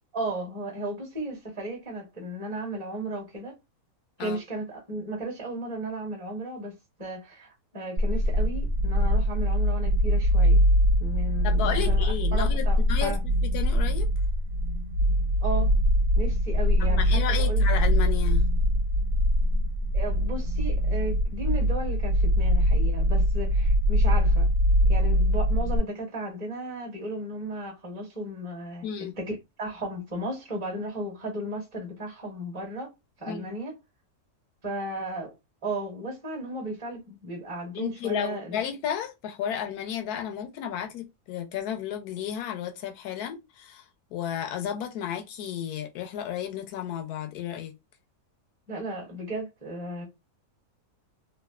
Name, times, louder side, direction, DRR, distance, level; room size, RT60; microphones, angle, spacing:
voice 1, 0.1-3.5 4.2-10.6 11.0-13.2 15.4-15.7 16.1-17.6 19.9-24.5 24.8-28.9 29.2-32.9 33.2-33.7 34.6-35.3 35.6-38.6 48.7-50.0, right 1 dB, 25° right, 0.9 m, -35 dB
sound 1, 8.0-25.8, equal, 60° right, 0.9 m, -23 dB
voice 2, 11.4-14.1 16.8-18.4 28.8-29.2 33.3-33.6 37.7-47.7, left 9 dB, 85° left, 1.1 m, -33 dB
3.2 x 2.3 x 2.3 m
omnidirectional pair, 1.6 m